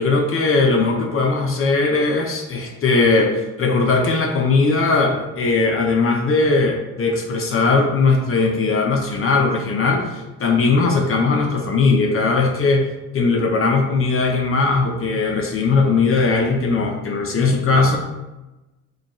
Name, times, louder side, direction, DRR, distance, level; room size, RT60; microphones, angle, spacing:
voice 1, 0.0-12.9 13.1-18.0, left 3 dB, 45° left, 2 dB, 0.6 m, -19 dB
4.8 x 2.4 x 3.0 m, 1.0 s
cardioid pair, 90°, 30 cm